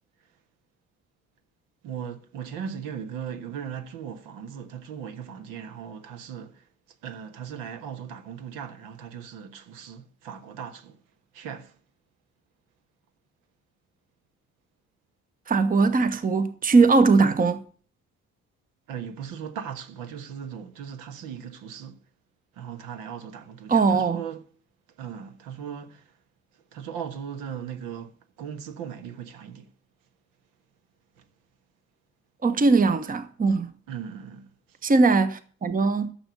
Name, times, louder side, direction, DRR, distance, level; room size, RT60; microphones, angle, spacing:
voice 1, 1.8-11.0 11.3-11.8 18.9-22.0 22.5-24.5 25.0-26.2 26.5-29.7 31.2-31.3 33.9-34.8, right 8 dB, 60° right, 1.4 m, -38 dB
voice 2, 15.5-17.6 23.7-24.2 32.4-33.7 34.8-36.1, right 4 dB, 25° right, 1.1 m, -20 dB
13.0 x 7.1 x 6.9 m
figure-of-eight pair, 45°, 37 cm